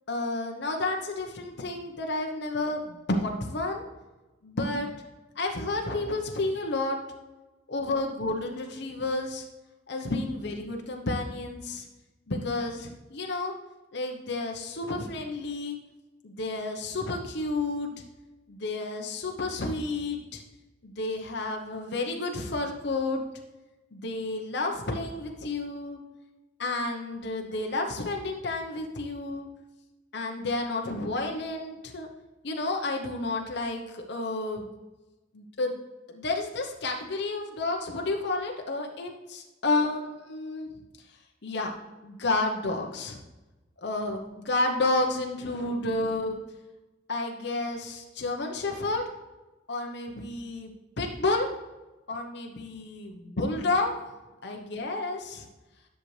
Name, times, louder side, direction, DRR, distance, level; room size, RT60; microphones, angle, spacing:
voice 1, 0.1-3.8 4.4-4.9 5.4-7.0 7.7-9.4 9.9-11.9 12.3-13.5 13.9-15.8 16.2-17.9 18.5-20.4 20.8-23.2 23.9-26.0 26.6-29.5 30.1-32.1 32.4-34.7 35.3-35.7 36.1-40.7 41.4-41.7 42.0-43.2 43.8-46.4 47.1-49.0 49.7-51.5 52.1-54.0 54.4-55.5, left 2 dB, 60° left, 1 dB, 0.9 m, -31 dB
10.5 x 6.6 x 3.2 m, 1.1 s
head